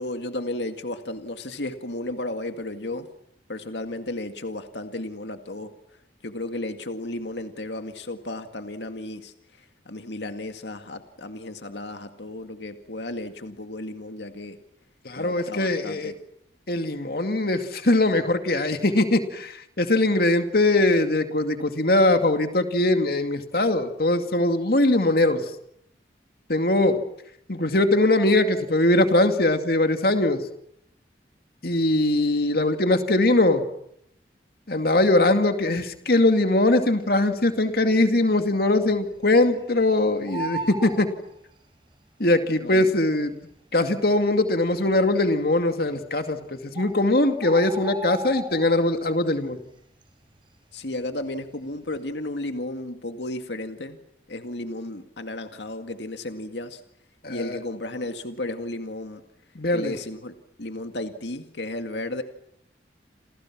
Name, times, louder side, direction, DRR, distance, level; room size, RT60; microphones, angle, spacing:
voice 1, 0.0-3.1 3.5-5.7 6.2-14.6 15.2-16.1 42.6-43.0 50.7-54.0 54.3-56.8 57.3-59.2 59.7-62.2, left 1 dB, 85° left, 7 dB, 2.0 m, -34 dB
voice 2, 15.0-16.1 16.7-25.4 26.5-27.0 27.5-30.4 31.6-33.6 34.7-41.1 42.2-43.3 43.7-49.6 57.2-57.6 59.6-60.0, left 2 dB, 60° left, 7 dB, 2.3 m, -21 dB
Bird, 37.4-37.9 38.3-38.4 38.6-39.8 40.1-41.9 42.8-42.9 43.5-43.6 43.8-43.9 44.6-45.0 46.0-46.1 46.4-46.5 46.8-49.0 49.4-49.7 50.0-51.4 51.7-52.0, right 2 dB, 30° right, 5.0 m, -36 dB
29.0 x 28.0 x 6.1 m, 0.73 s
head